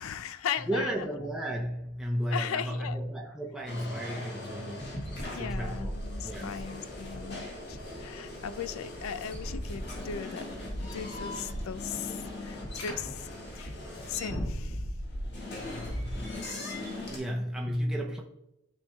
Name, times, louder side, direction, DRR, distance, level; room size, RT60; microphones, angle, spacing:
voice 1, 0.0-0.9 2.3-3.0 5.2-13.7 14.1-14.8 15.4-15.9, left 7 dB, 70° left, 14 dB, 0.4 m, -38 dB
voice 2, 0.6-4.8 5.4-5.9 6.2-6.6 16.0-16.3 17.1-18.2, equal, ahead, -1 dB, 0.7 m, -33 dB
sound 1, 3.7-17.2, left 1 dB, 50° left, 1.7 m, -38 dB
10.5 x 4.4 x 2.3 m, 0.87 s
head